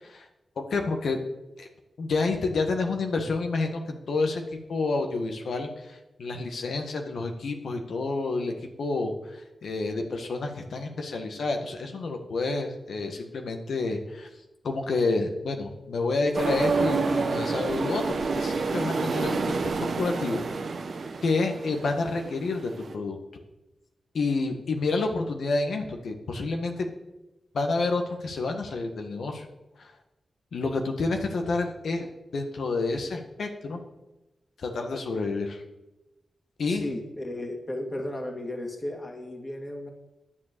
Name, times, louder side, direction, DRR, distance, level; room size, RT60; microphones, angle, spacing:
voice 1, 0.7-1.2 1.6-1.7 2.0-8.5 8.8-9.1 9.6-14.3 14.6-19.7 20.0-20.4 21.2-23.2 24.1-26.9 27.5-29.5 29.8-29.9 30.5-33.8 34.6-35.6 36.6-36.8, left 3 dB, 80° left, 4 dB, 1.6 m, -29 dB
sound 1, 16.3-22.9, right 4 dB, 70° right, 1.0 m, -29 dB
voice 2, 36.7-39.9, left 1 dB, 35° left, 3 dB, 2.2 m, -34 dB
10.5 x 7.5 x 6.8 m, 0.99 s
cardioid pair, 50°, 0 cm